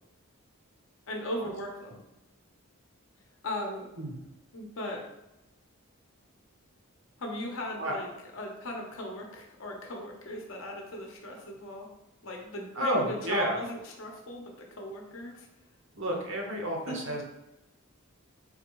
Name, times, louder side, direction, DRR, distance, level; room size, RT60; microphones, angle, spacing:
voice 1, 1.1-2.0 3.4-3.9 4.5-5.0 7.2-11.9 12.2-15.5 16.9-17.2, left 1 dB, 65° left, 1 dB, 0.8 m, -38 dB
voice 2, 12.7-13.6 15.9-17.2, right 1 dB, 60° right, 0 dB, 0.9 m, -30 dB
4.0 x 3.5 x 3.0 m, 0.92 s
head